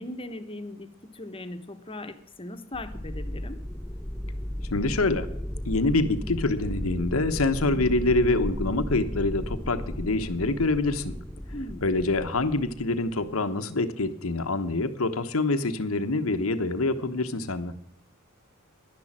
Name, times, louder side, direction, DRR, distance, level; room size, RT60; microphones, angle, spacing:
voice 1, 0.0-3.6 11.5-11.8, left 1 dB, 25° left, 9 dB, 1.3 m, -39 dB
sound 1, 2.7-13.4, equal, 5° left, 0.5 m, -35 dB
voice 2, 4.7-5.3 5.7-11.1 11.8-17.7, left 2 dB, 90° left, 9 dB, 1.1 m, -26 dB
11.5 x 10.5 x 7.4 m, 0.69 s
head